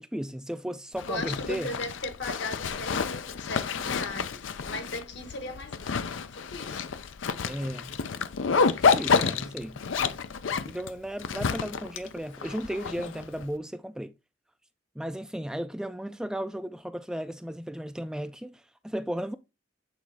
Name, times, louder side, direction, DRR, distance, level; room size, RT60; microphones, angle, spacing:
voice 1, 0.0-1.7 7.5-8.0 8.8-9.8 10.6-14.1 15.0-19.4, equal, 5° right, 0.3 m, -35 dB
Zipper (clothing), 1.0-13.4, left 5 dB, 90° left, 0.5 m, -29 dB
voice 2, 1.1-6.9, left 2 dB, 65° left, 1.3 m, -38 dB
8.6 x 4.1 x 3.4 m
head